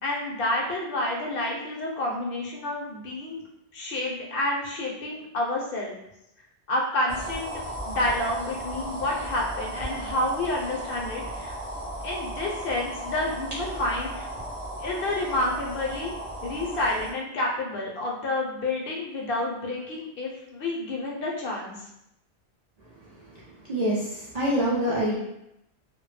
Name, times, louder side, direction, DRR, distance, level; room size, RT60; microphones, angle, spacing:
voice 1, 0.0-3.4 3.7-5.9 6.7-11.5 12.0-14.3 14.8-16.1 16.4-21.8, left 1 dB, 65° left, -1 dB, 0.7 m, -29 dB
sound 1, 7.1-17.1, right 1 dB, 35° right, 0.8 m, -35 dB
voice 2, 23.7-25.2, equal, 55° right, -6 dB, 0.4 m, -25 dB
2.1 x 2.0 x 3.1 m, 0.81 s
omnidirectional pair, 1.1 m